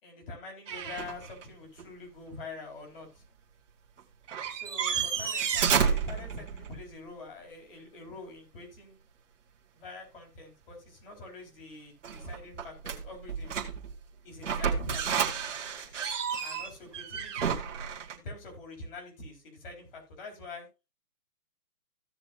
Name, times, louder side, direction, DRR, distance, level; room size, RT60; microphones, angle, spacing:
voice 1, 0.0-3.1 4.5-9.0 9.7-13.5 14.2-15.2 16.4-17.5 18.1-20.7, left 2 dB, 35° left, 1 dB, 4.5 m, -45 dB
sound 1, 0.7-1.4 1.8-1.9 4.0-4.1 4.3-6.8 12.0-14.0 14.4-18.2, right 7 dB, 50° right, 2.2 m, -31 dB
16.0 x 6.8 x 2.8 m, 0.27 s
hypercardioid pair, 170°, 47 cm